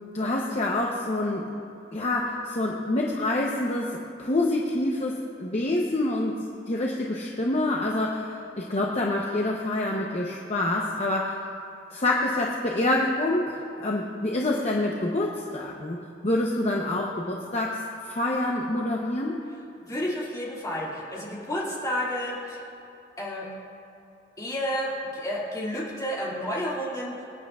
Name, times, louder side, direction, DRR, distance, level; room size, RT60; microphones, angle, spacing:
voice 1, 0.1-1.5 1.9-11.4 11.9-16.0 16.2-19.4, left 2 dB, 35° left, -1 dB, 0.8 m, -27 dB
voice 2, 19.9-22.7 23.2-23.5 24.4-27.4, equal, 20° left, -6 dB, 2.3 m, -31 dB
24.0 x 9.0 x 2.4 m, 2.7 s
head